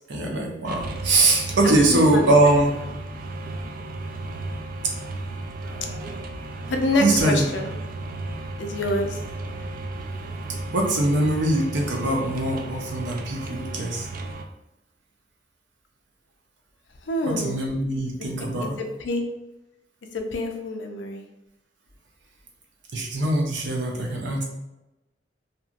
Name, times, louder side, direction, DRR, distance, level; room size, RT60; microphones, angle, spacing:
voice 1, 0.1-2.7 5.6-6.0 6.9-7.5 10.7-14.1 17.2-18.8 22.9-24.4, right 2 dB, 80° right, 0 dB, 0.7 m, -22 dB
sound 1, 0.6-14.4, right 2 dB, 50° right, 0.3 m, -34 dB
voice 2, 1.9-2.2 6.7-7.7 8.6-9.2 17.1-17.6 18.8-19.2 20.3-21.2, left 2 dB, 80° left, 4 dB, 0.5 m, -26 dB
2.8 x 2.6 x 2.5 m, 0.96 s
head